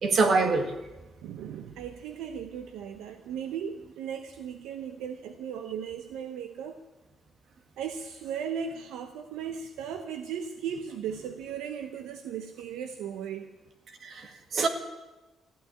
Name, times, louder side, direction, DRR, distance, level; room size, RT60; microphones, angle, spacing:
voice 1, 0.0-0.7 14.0-14.7, right 4 dB, 60° right, 6 dB, 2.1 m, -25 dB
voice 2, 1.2-6.8 7.8-13.5, right 8 dB, 90° right, 7 dB, 0.9 m, -37 dB
14.5 x 9.5 x 9.7 m, 1.1 s
cardioid pair, 90°, 0 cm